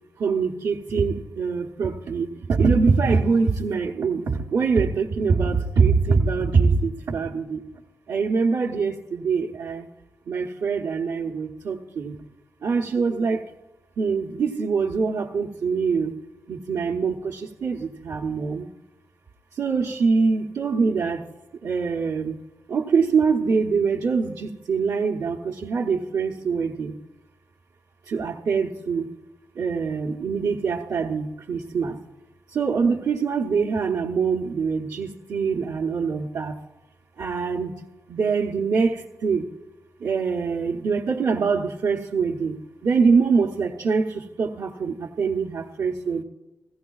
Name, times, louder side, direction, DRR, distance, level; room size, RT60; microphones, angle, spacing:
voice 1, 0.2-7.6 8.1-9.9 10.3-12.2 12.6-13.4 14.0-16.1 16.5-18.7 19.5-21.2 21.6-22.4 22.7-26.9 28.1-29.1 29.6-32.0 32.5-36.6 37.2-37.7 38.1-39.5 40.0-46.2, right 5 dB, 85° right, -5 dB, 0.9 m, -24 dB
16.5 x 15.0 x 2.3 m, 1.1 s
wide cardioid pair, 100°, 6 cm